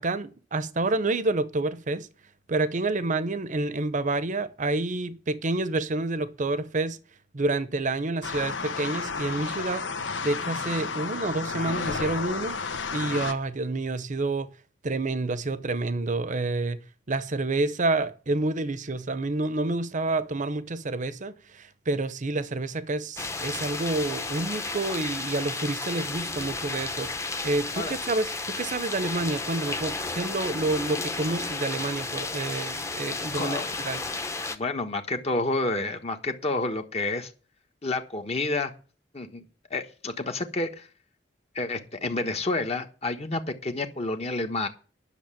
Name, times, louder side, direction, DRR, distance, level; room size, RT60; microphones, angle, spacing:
voice 1, 0.0-2.1 2.5-7.0 7.3-9.9 10.2-14.5 14.8-16.8 17.1-34.0, right 2 dB, 45° right, 0.8 m, -28 dB
sound 1, 8.2-13.3, left 4 dB, 75° left, 1.2 m, -32 dB
sound 2, 23.2-34.6, left 3 dB, 15° left, 1.0 m, -33 dB
voice 2, 33.3-33.7 34.5-37.3 37.8-38.7 39.1-39.4 39.7-40.9 41.5-44.7, left 2 dB, 35° left, 1.3 m, -29 dB
10.5 x 6.6 x 8.9 m
head